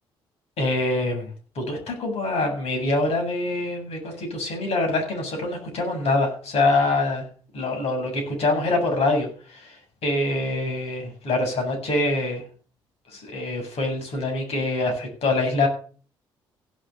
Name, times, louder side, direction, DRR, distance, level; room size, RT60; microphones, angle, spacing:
voice 1, 0.6-1.3 1.6-7.3 7.5-9.8 10.0-12.4 13.1-15.7, left 2 dB, 60° left, 3 dB, 7.4 m, -25 dB
16.0 x 6.7 x 7.0 m, 0.41 s
hypercardioid pair, 50°, 12 cm